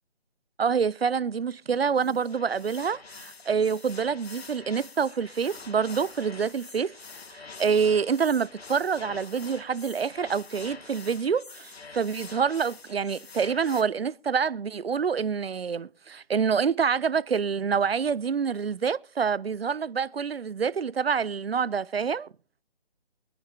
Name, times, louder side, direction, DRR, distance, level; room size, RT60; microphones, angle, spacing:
voice 1, 0.6-6.9 7.3-22.3, right 6 dB, 70° right, 0.5 m, -27 dB
sound 1, 2.0-13.8, left 4 dB, 75° left, 0.9 m, -46 dB
24.5 x 9.6 x 2.7 m
figure-of-eight pair, 150°, 31 cm